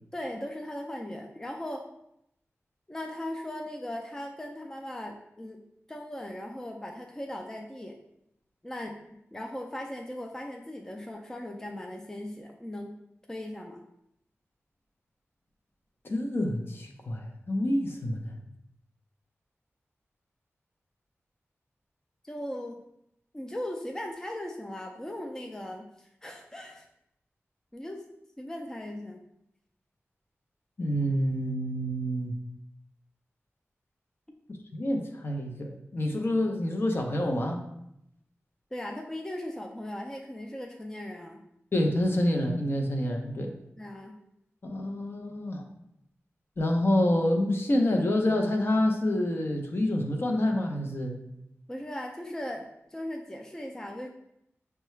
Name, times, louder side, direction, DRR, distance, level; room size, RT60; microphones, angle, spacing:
voice 1, 0.1-1.8 2.9-5.6 5.9-7.9 8.6-9.0 9.3-13.0 13.3-13.8 22.2-22.8 23.3-26.9 27.7-28.0 28.4-29.2 38.7-41.4 43.8-44.1 51.7-54.1, left 1 dB, 10° left, 2 dB, 0.4 m, -38 dB
voice 2, 16.0-18.3 30.8-32.3 34.7-37.6 41.7-43.5 44.6-45.6 46.6-51.1, left 1 dB, 50° left, 2 dB, 0.7 m, -27 dB
5.5 x 2.3 x 3.1 m, 0.79 s
wide cardioid pair, 90°, 5 cm